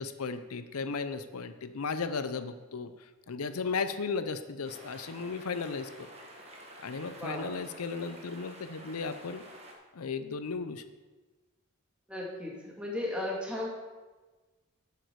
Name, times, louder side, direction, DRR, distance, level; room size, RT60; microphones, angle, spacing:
voice 1, 0.0-6.1 6.8-9.4 9.9-10.8, left 4 dB, 90° left, 11 dB, 0.6 m, -35 dB
sound 1, 4.6-9.7, right 1 dB, 30° right, 1.5 m, -50 dB
voice 2, 7.2-7.7 12.1-13.7, left 1 dB, 5° right, -3 dB, 2.3 m, -35 dB
11.5 x 8.4 x 4.7 m, 1.2 s
head